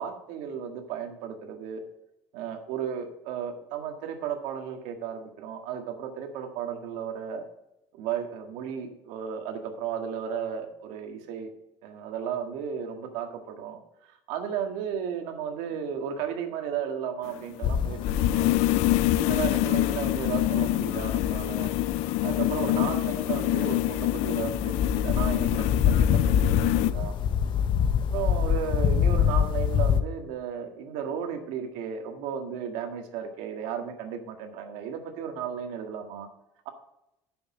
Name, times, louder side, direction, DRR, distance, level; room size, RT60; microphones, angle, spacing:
voice 1, 0.0-1.8 2.3-7.4 7.9-11.5 11.8-18.5 19.2-21.7 22.2-25.7 26.0-27.1 28.0-36.3, right 8 dB, 80° right, 5 dB, 1.8 m, -34 dB
sound 1, 17.3-26.9, left 16 dB, 70° left, 0.4 m, -26 dB
sound 2, 17.6-30.0, left 8 dB, 45° left, 0.8 m, -27 dB
9.9 x 7.0 x 5.4 m, 0.86 s
cardioid pair, 150°, 11 cm